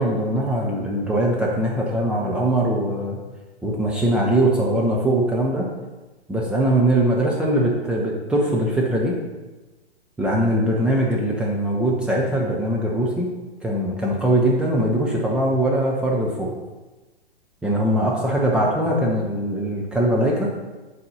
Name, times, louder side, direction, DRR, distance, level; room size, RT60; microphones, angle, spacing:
voice 1, 0.0-3.2 3.6-5.7 6.3-9.1 10.2-13.3 13.6-16.5 17.6-20.5, right 1 dB, 5° right, -4 dB, 0.4 m, -21 dB
7.7 x 4.1 x 5.4 m, 1.2 s
figure-of-eight pair, 120°, 33 cm